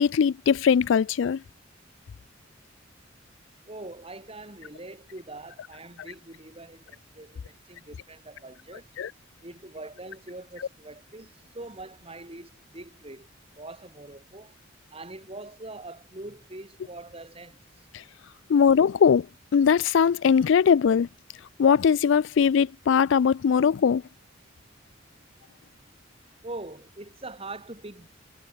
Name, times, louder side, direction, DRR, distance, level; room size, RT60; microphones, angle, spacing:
voice 1, 0.0-1.4 9.0-9.1 18.5-19.3 19.5-21.1 21.6-24.0, left 7 dB, 65° left, 0.4 m, -20 dB
voice 2, 3.7-8.9 9.4-13.3 13.5-14.6 14.9-17.9 26.4-28.1, right 2 dB, 30° right, 4.4 m, -43 dB
head